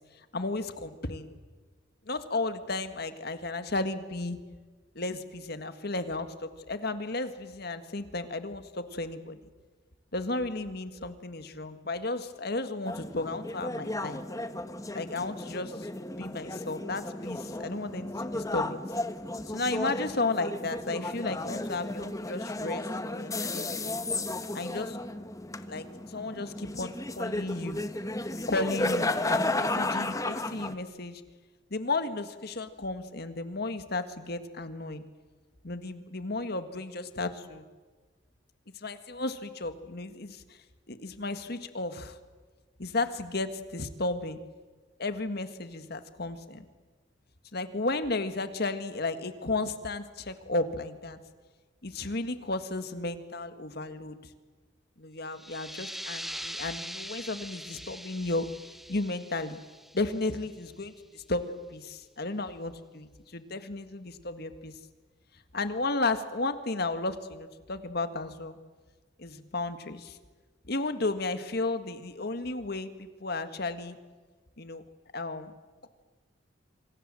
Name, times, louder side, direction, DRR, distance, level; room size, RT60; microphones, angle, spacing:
voice 1, 0.3-1.3 2.1-4.4 5.0-9.4 10.1-14.2 14.9-15.9 16.2-18.8 19.5-24.0 24.5-25.0 25.7-27.8 28.5-31.2 31.7-35.0 35.6-37.6 38.8-40.6 40.9-42.2 42.8-44.4 45.0-46.7 47.5-51.2 51.8-54.3 55.0-58.5 58.9-59.6 59.9-64.8 65.5-68.6 69.2-70.2 70.7-74.0 74.6-74.8 75.1-75.5, left 2 dB, 55° left, 9 dB, 1.8 m, -34 dB
sound 1, 12.9-30.7, left 2 dB, 15° left, 1.1 m, -34 dB
sound 2, 55.3-60.7, equal, ahead, 0.7 m, -42 dB
27.0 x 25.5 x 7.7 m, 1.3 s
head